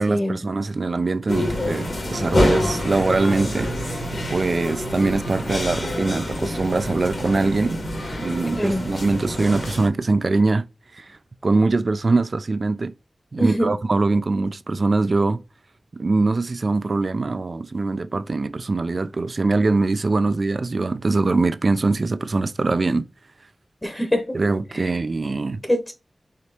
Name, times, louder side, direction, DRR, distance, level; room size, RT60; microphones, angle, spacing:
voice 1, 0.0-7.8 8.2-10.6 10.9-11.1 11.4-12.9 13.3-15.4 15.9-23.1 24.3-25.6, right 3 dB, 60° right, 0.4 m, -22 dB
sound 1, 1.3-9.9, left 1 dB, 75° left, 2.0 m, -26 dB
voice 2, 13.4-13.7 23.8-24.4 24.7-24.9 25.7-25.9, equal, 20° left, 0.9 m, -23 dB
5.0 x 3.0 x 2.8 m
wide cardioid pair, 80°, 0 cm